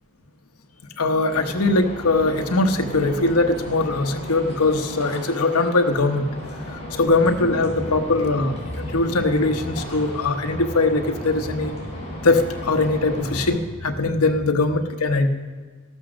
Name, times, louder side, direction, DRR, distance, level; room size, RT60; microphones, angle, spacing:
voice 1, 1.0-6.2 6.7-11.8 12.2-15.3, left 2 dB, 80° left, 6 dB, 1.1 m, -21 dB
sound 1, 1.3-13.4, left 1 dB, 30° left, 5.6 m, -35 dB
sound 2, 7.0-14.4, equal, 5° right, 3.5 m, -38 dB
14.0 x 12.0 x 6.3 m, 1.4 s
head